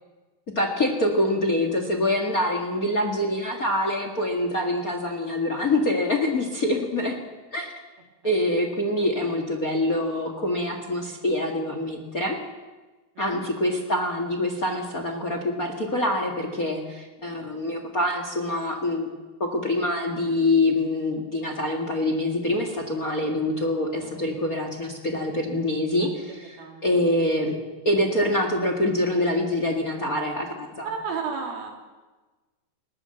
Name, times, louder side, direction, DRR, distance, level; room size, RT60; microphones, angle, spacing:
voice 1, 0.5-7.1 7.5-7.7 8.2-12.4 13.2-19.1 19.4-26.6 26.8-27.6 27.8-30.9, left 1 dB, 45° left, 4 dB, 1.1 m, -25 dB
voice 2, 24.0-24.3 25.9-26.1 26.6-26.8 30.8-31.7, right 5 dB, 60° right, 2 dB, 4.9 m, -33 dB
20.5 x 19.0 x 7.9 m, 1.2 s
omnidirectional pair, 5.1 m